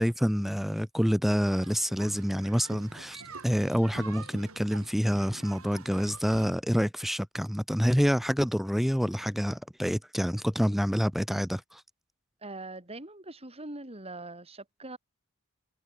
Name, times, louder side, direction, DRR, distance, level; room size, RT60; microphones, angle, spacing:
voice 1, 0.0-11.8, equal, ahead, 5.0 m, -27 dB
sound 1, 1.5-6.5, right 3 dB, 65° right, 6.9 m, -47 dB
voice 2, 12.4-15.0, right 2 dB, 25° right, 6.5 m, -42 dB
head